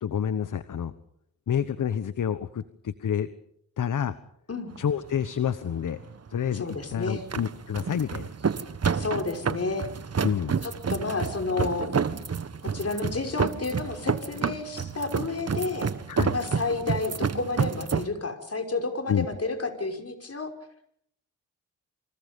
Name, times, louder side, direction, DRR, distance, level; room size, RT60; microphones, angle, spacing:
voice 1, 0.0-0.9 1.5-3.3 3.8-4.2 4.8-6.0 6.3-8.3 10.2-10.6 16.1-16.4 19.1-19.3, left 8 dB, 65° left, 14 dB, 1.2 m, -28 dB
sound 1, 4.7-18.1, right 6 dB, 45° right, 1.5 m, -30 dB
voice 2, 6.5-7.2 8.9-9.9 10.6-11.9 12.6-15.9 16.3-20.5, left 3 dB, 45° left, 5 dB, 5.8 m, -31 dB
28.0 x 26.0 x 5.4 m, 0.70 s
cardioid pair, 50°, 34 cm